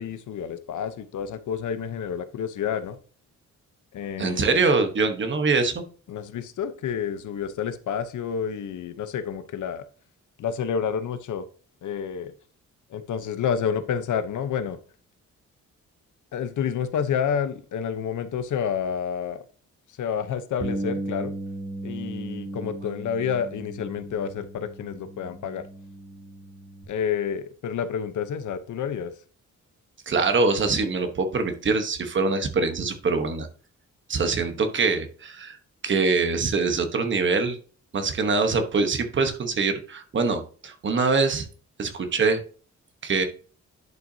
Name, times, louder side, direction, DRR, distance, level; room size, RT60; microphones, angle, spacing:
voice 1, 0.0-3.0 3.9-4.7 6.1-9.9 10.4-11.5 11.8-12.3 12.9-14.8 16.3-19.4 19.9-21.3 21.8-25.7 26.9-29.1, left 7 dB, 80° left, 11 dB, 0.8 m, -29 dB
voice 2, 4.2-5.8 30.1-33.5 34.1-35.6 35.8-37.6 37.9-41.5 41.8-42.4 43.0-43.2, right 4 dB, 40° right, 7 dB, 1.1 m, -24 dB
Bass guitar, 20.6-26.8, right 1 dB, 25° right, 1.5 m, -36 dB
10.5 x 5.7 x 2.7 m, 0.41 s
wide cardioid pair, 175°, 30 cm